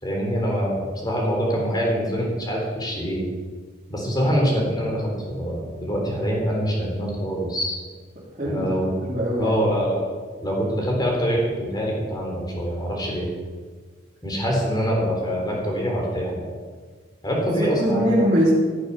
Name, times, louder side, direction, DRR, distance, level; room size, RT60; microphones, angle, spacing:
voice 1, 0.0-3.3 3.9-7.7 8.4-8.9 9.4-10.0 10.4-13.3 14.2-16.5 17.2-18.1, equal, 25° left, -1 dB, 3.6 m, -24 dB
voice 2, 9.0-9.6 17.8-18.5, equal, 40° right, -11 dB, 3.7 m, -21 dB
16.0 x 8.4 x 5.9 m, 1.5 s
head